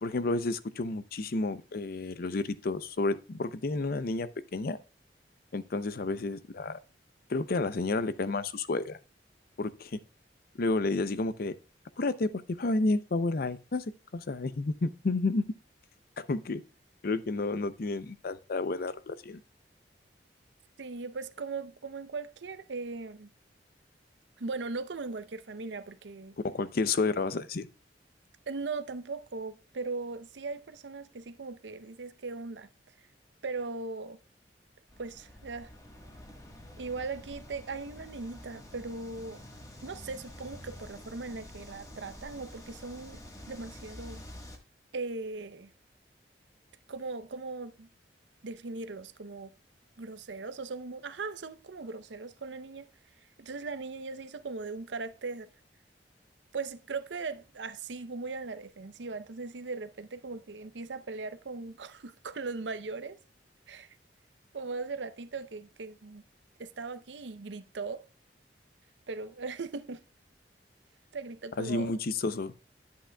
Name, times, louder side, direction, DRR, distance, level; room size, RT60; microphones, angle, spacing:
voice 1, 0.0-4.8 5.5-6.8 7.3-9.0 9.6-10.0 10.6-11.5 12.0-13.8 14.1-15.4 16.2-16.6 17.0-19.4 26.4-27.7 71.6-72.5, left 3 dB, 55° left, 0.6 m, -31 dB
voice 2, 20.8-23.3 24.4-26.4 28.5-32.7 33.4-34.2 35.0-35.7 36.8-39.4 39.8-44.2 44.9-45.7 46.9-47.9 48.4-49.5 50.0-52.9 53.4-55.5 56.5-63.2 63.7-63.9 64.5-66.2 66.6-68.1 69.1-70.0 71.1-71.9, right 4 dB, 90° right, 0.7 m, -39 dB
sound 1, 34.9-44.6, left 1 dB, 20° left, 1.4 m, -48 dB
10.0 x 8.4 x 2.3 m
head